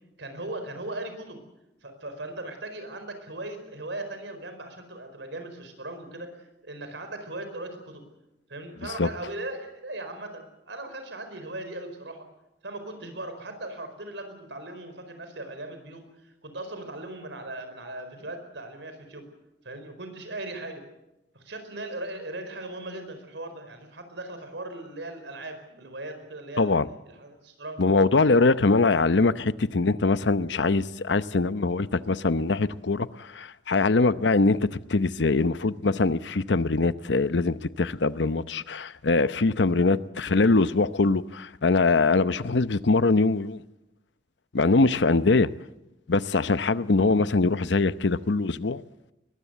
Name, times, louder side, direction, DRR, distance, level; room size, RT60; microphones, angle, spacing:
voice 1, 0.2-1.4 1.8-8.0 8.5-12.3 12.6-19.3 19.6-20.8 21.3-26.7 27.1-27.9, right 2 dB, 80° right, 4.8 m, -38 dB
voice 2, 26.6-26.9 27.8-43.6 44.5-45.5 46.1-48.8, left 3 dB, 75° left, 0.8 m, -23 dB
22.0 x 20.0 x 8.1 m
head